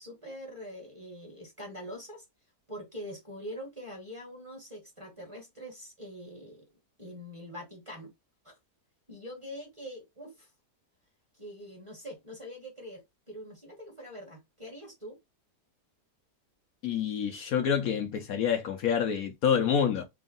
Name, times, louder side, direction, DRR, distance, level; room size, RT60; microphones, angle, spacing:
voice 1, 0.0-2.2 2.7-6.7 7.0-8.1 8.4-8.5 9.1-10.5 11.4-15.2, equal, 20° right, 1.2 m, -44 dB
voice 2, 16.8-20.0, left 7 dB, 65° left, 1.0 m, -27 dB
3.5 x 2.4 x 3.7 m
omnidirectional pair, 1.8 m